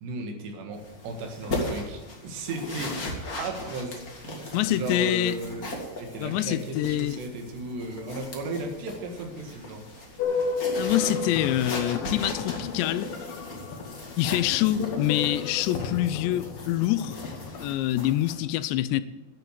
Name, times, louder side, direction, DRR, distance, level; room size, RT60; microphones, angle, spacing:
voice 1, 0.0-3.0 3.4-5.7 6.0-10.2, right 2 dB, 75° right, 3.8 m, -35 dB
sound 1, 0.7-18.3, left 1 dB, 35° left, 1.5 m, -38 dB
voice 2, 4.5-5.3 6.2-7.2 10.8-13.1 14.2-17.2 17.6-19.0, left 14 dB, 85° left, 2.8 m, -26 dB
sound 2, 10.2-17.6, left 4 dB, 65° left, 2.8 m, -33 dB
11.0 x 8.6 x 7.6 m
omnidirectional pair, 5.0 m